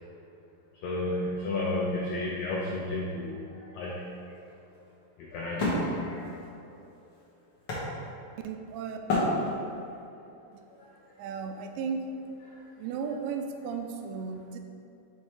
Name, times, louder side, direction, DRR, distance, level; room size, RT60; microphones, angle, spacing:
voice 1, 0.8-4.2 5.3-6.5 12.5-12.6, left 2 dB, 85° left, -5 dB, 1.5 m, -32 dB
Wood, 3.8-8.5 9.1-9.9, left 1 dB, 55° left, 1.3 m, -31 dB
voice 2, 8.4-9.0 10.5-10.6 11.2-12.2 12.8-14.6, right 5 dB, 85° right, 5 dB, 2.3 m, -35 dB
7.0 x 3.2 x 4.7 m, 2.7 s
omnidirectional pair, 4.0 m